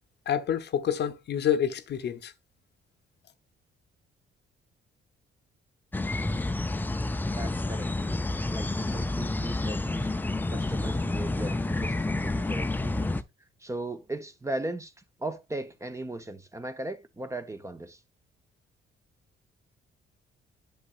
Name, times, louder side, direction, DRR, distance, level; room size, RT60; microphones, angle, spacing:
voice 1, 0.3-2.3, left 9 dB, 60° left, 0.7 m, -28 dB
sound 1, 5.9-13.2, left 2 dB, 10° left, 0.4 m, -29 dB
voice 2, 7.3-7.9 8.4-10.1 10.5-13.2 13.6-14.9 15.2-18.0, right 2 dB, 15° right, 0.8 m, -37 dB
8.5 x 6.2 x 2.4 m
cardioid pair, 90°, 20 cm